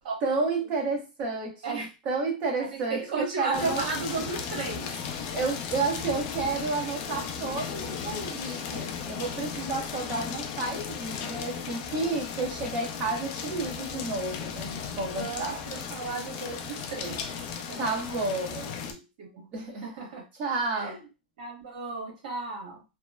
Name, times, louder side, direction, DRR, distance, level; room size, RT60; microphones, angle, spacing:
voice 1, 0.2-3.8 5.3-15.6 17.8-18.7 19.5-19.8 20.4-21.0, right 3 dB, 30° right, 0 dB, 1.0 m, -31 dB
voice 2, 2.6-4.9 15.2-17.2 17.7-18.2 18.6-19.5 19.8-20.3 20.7-21.0 21.4-22.8, right 4 dB, 65° right, -1 dB, 1.4 m, -35 dB
sound 1, 3.5-18.9, left 6 dB, 45° left, 0.5 m, -36 dB
2.9 x 2.1 x 2.2 m, 0.27 s
hypercardioid pair, 140°, 5 cm